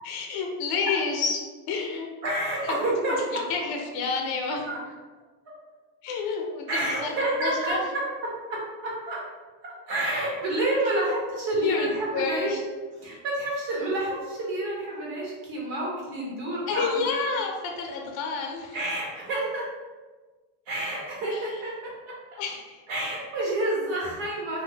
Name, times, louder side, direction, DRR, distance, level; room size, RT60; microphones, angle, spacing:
voice 1, 0.0-2.1 2.6-2.8 3.5-4.7 6.0-7.1 7.4-7.9 10.8-11.2 11.5-12.6 16.7-18.8 21.3-21.6 22.4-22.8, left 4 dB, 55° left, 2 dB, 0.5 m, -30 dB
voice 2, 2.2-3.2 4.7-4.8 6.7-9.2 9.6-12.6 13.0-17.0 18.7-19.7 20.7-22.4 22.9-24.6, right 1 dB, 65° right, -4 dB, 1.2 m, -29 dB
2.6 x 2.1 x 3.1 m, 1.3 s
cardioid pair, 120°, 47 cm